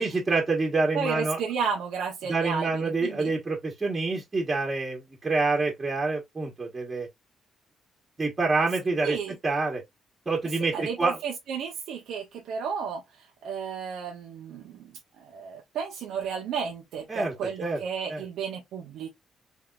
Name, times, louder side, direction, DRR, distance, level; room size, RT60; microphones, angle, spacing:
voice 1, 0.0-1.4 2.3-7.1 8.2-9.2 9.4-9.8 10.2-11.2 17.1-17.3 17.6-17.8 18.1-18.2, right 3 dB, 25° right, 1.4 m, -27 dB
voice 2, 0.9-3.3 9.0-9.4 10.6-19.1, right 6 dB, 80° right, 0.9 m, -33 dB
3.6 x 3.5 x 2.4 m
cardioid pair, 90°, 0 cm